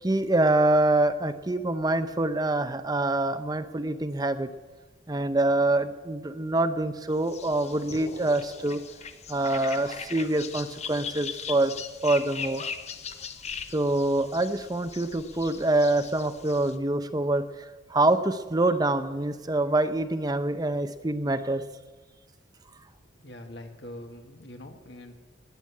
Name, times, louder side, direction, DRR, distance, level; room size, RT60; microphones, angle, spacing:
voice 1, 0.0-4.5 5.1-8.8 9.3-11.7 12.0-12.6 13.7-21.6, right 2 dB, 20° right, 9 dB, 0.7 m, -25 dB
sound 1, 7.2-16.8, left 6 dB, 35° left, 0.8 m, -40 dB
sound 2, 7.9-9.8, equal, 85° left, 4.0 m, -46 dB
voice 2, 23.2-25.1, left 1 dB, 60° left, 5 dB, 1.8 m, -43 dB
19.5 x 8.0 x 8.5 m, 1.2 s
head